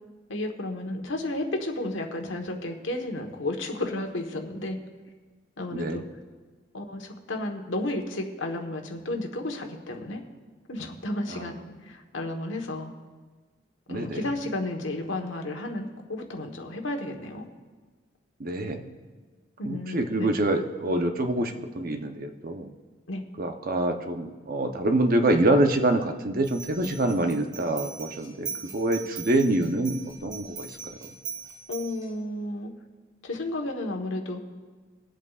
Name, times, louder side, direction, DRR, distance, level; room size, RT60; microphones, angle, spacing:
voice 1, 0.3-4.8 5.6-6.0 6.7-10.2 10.7-12.9 13.9-17.4 19.7-20.3 23.1-23.2 31.7-32.7 33.2-34.4, left 1 dB, 85° left, 3 dB, 1.3 m, -32 dB
voice 2, 5.7-6.1 11.3-11.5 13.9-14.3 18.4-18.9 19.7-22.7 23.4-30.7 31.0-31.1, right 1 dB, 50° right, 5 dB, 0.8 m, -26 dB
sound 1, 26.4-32.1, right 6 dB, 20° right, 1.8 m, -40 dB
23.0 x 8.2 x 2.4 m, 1.4 s
head